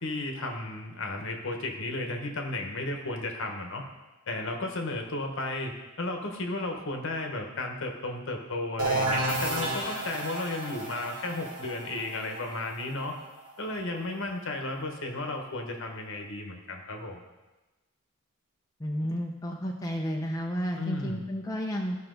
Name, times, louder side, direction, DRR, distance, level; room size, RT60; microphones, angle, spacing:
voice 1, 0.0-3.8 4.3-13.2 13.6-17.2 20.8-21.3, left 2 dB, 60° left, 3 dB, 1.2 m, -34 dB
sound 1, 8.8-14.4, right 2 dB, 70° right, 2.6 m, -32 dB
voice 2, 18.8-22.0, equal, 15° left, -1 dB, 0.6 m, -32 dB
13.5 x 5.7 x 3.9 m, 1.1 s
head